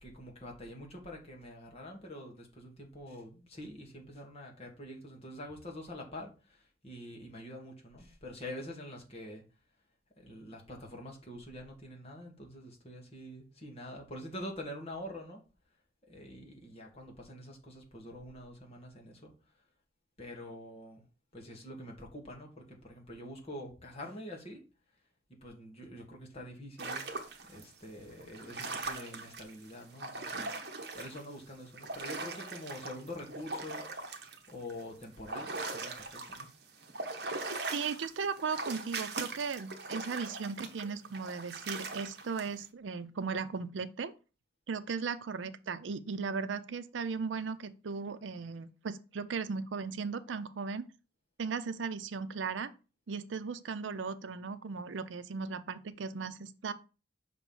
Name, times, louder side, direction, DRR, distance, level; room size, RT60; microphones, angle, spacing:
voice 1, 0.0-9.4 10.2-15.4 16.1-19.3 20.2-21.0 21.3-24.6 25.4-27.1 27.5-30.5 30.9-33.8 34.5-36.5, left 1 dB, 35° left, 1.6 m, -46 dB
sound 1, 26.8-27.6 28.2-31.3 31.5-36.5 36.8-42.5, right 3 dB, 60° right, 0.9 m, -40 dB
voice 2, 37.7-44.1 44.7-50.8 51.4-52.7 53.1-56.7, right 5 dB, 85° right, 0.5 m, -37 dB
5.9 x 3.1 x 5.4 m
head